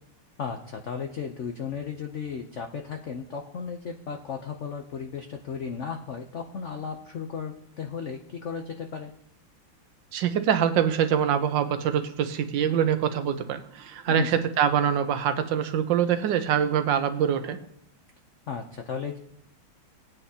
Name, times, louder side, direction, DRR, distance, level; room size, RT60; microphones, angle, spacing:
voice 1, 0.4-9.1 14.1-14.4 18.5-19.2, left 6 dB, 85° left, 4 dB, 0.6 m, -35 dB
voice 2, 10.1-17.6, right 8 dB, 70° right, 9 dB, 1.4 m, -24 dB
18.5 x 8.9 x 2.8 m, 0.75 s
omnidirectional pair, 2.2 m